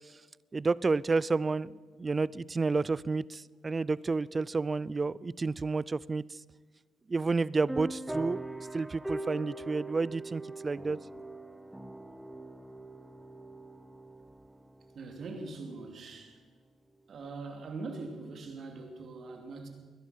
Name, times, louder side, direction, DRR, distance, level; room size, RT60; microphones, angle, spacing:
voice 1, 0.5-6.4 7.1-11.0, right 3 dB, 30° right, 22 dB, 0.4 m, -30 dB
sound 1, 7.7-15.8, right 2 dB, 5° right, 0.9 m, -42 dB
voice 2, 14.9-16.4 17.1-19.7, right 3 dB, 55° right, 4 dB, 2.7 m, -42 dB
21.0 x 11.0 x 5.8 m, 1.4 s
cardioid pair, 90°, 0 cm